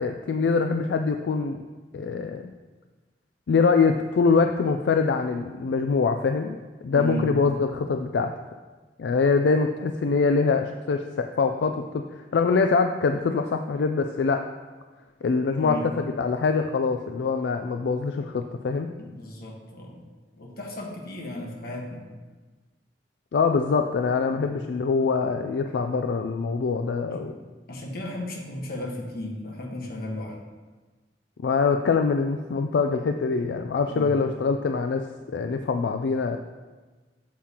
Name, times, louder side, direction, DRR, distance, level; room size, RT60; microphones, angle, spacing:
voice 1, 0.0-1.6 1.9-2.4 3.5-6.6 6.8-8.3 9.0-14.4 15.2-15.8 16.2-18.9 23.3-27.3 31.4-35.1 35.3-36.4, left 4 dB, 80° left, 6 dB, 0.4 m, -24 dB
voice 2, 6.9-7.3 15.6-15.9 19.0-20.0 20.4-22.1 24.1-24.5 27.1-27.3 27.7-30.4 33.9-34.1, left 1 dB, 60° left, 0 dB, 1.4 m, -35 dB
8.3 x 7.6 x 2.9 m, 1.3 s
head